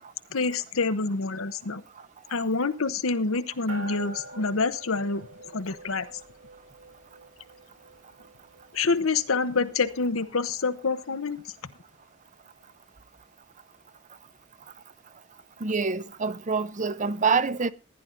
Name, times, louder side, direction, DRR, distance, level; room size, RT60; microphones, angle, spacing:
voice 1, 0.3-1.8 2.3-6.1 8.7-11.4, left 4 dB, 80° left, 1.0 m, -27 dB
sound 1, 3.7-11.4, right 1 dB, 85° right, 5.3 m, -47 dB
voice 2, 15.6-17.7, right 5 dB, 35° right, 0.7 m, -26 dB
15.5 x 10.5 x 3.9 m
head